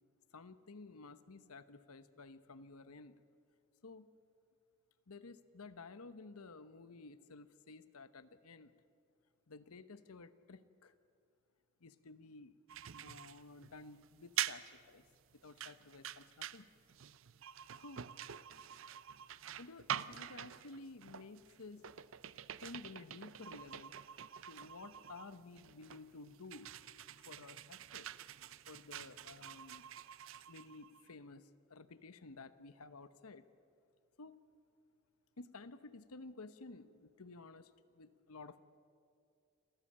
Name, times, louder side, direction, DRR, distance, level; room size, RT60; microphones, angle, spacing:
voice 1, 0.3-3.2 3.8-4.1 5.1-8.7 9.5-10.9 11.8-12.6 13.0-15.1 15.3-16.7 17.8-18.0 19.6-21.8 22.6-24.0 24.5-26.7 27.2-28.1 28.7-29.8 30.5-33.5 34.2-34.4 35.4-38.6, left 3 dB, 85° left, 13 dB, 1.0 m, -53 dB
sound 1, 12.7-31.1, right 10 dB, 60° right, 0.6 m, -46 dB
28.0 x 14.5 x 8.6 m, 2.4 s
head